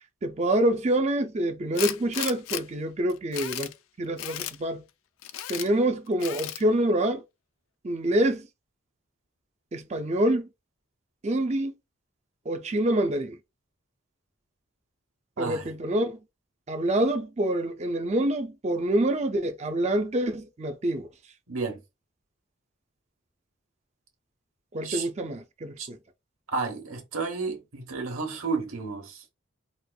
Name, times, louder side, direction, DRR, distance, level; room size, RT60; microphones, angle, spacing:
voice 1, 0.2-3.7 4.0-4.8 5.5-7.2 7.8-8.5 9.7-10.5 11.2-11.7 12.5-13.4 15.4-16.2 16.7-21.1 24.7-26.0, right 1 dB, 30° right, 0.4 m, -26 dB
Tools, 1.7-2.6 3.1-3.7 4.2-4.6 5.2-5.7 6.2-6.6, left 12 dB, 75° left, 0.3 m, -34 dB
voice 2, 15.4-15.7 21.5-21.8 24.8-25.1 25.8-25.9 26.5-29.3, right 4 dB, 85° right, 1.1 m, -32 dB
4.2 x 2.5 x 2.3 m
head